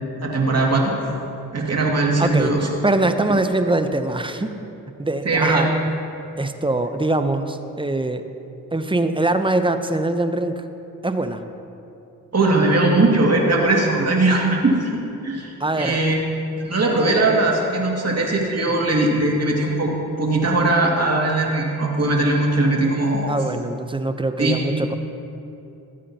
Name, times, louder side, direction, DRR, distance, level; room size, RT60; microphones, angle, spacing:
voice 1, 0.2-0.9 1.5-2.7 5.3-5.7 12.3-14.9 15.2-16.1 16.5-19.9 20.2-23.3 24.4-24.6, right 2 dB, 40° right, -2 dB, 2.2 m, -19 dB
voice 2, 2.2-4.5 5.0-5.7 6.4-8.2 8.7-10.6 11.0-11.4 15.6-16.0 23.3-25.0, right 2 dB, 15° right, 9 dB, 0.6 m, -23 dB
14.0 x 8.5 x 2.9 m, 2.7 s
supercardioid pair, 45°, 40 cm